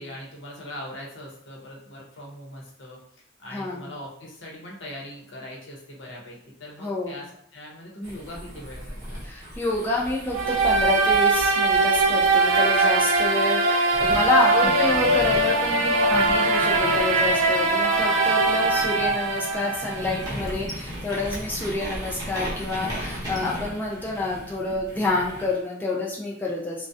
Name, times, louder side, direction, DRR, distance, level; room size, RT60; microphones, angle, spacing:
voice 1, 0.0-3.0 3.4-7.3 7.5-9.2 14.6-14.7, left 1 dB, 65° left, -3 dB, 0.8 m, -40 dB
voice 2, 3.5-3.9 6.8-7.2 9.2-26.9, left 2 dB, 10° left, -4 dB, 0.3 m, -28 dB
sound 1, 8.0-13.4 13.9-25.5, equal, 20° right, 0.8 m, -37 dB
sound 2, 10.3-20.3, right 3 dB, 75° right, 0.3 m, -21 dB
2.3 x 2.1 x 2.6 m, 0.71 s
head